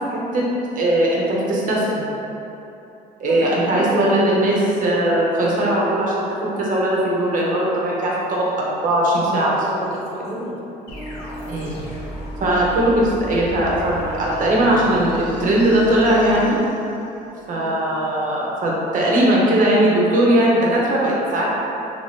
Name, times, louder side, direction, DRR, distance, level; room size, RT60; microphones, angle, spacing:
voice 1, 0.1-0.4 0.7-2.1 3.2-6.2 6.6-9.6 11.5-11.8 12.4-16.6 17.5-21.5, right 1 dB, 50° right, -4 dB, 0.8 m, -19 dB
voice 2, 9.2-10.6 17.5-17.7, left 1 dB, 40° left, -5 dB, 0.8 m, -31 dB
sound 1, 10.9-17.3, equal, 90° left, 0.8 m, -33 dB
3.2 x 2.6 x 3.5 m, 2.9 s
cardioid pair, 110°, 17 cm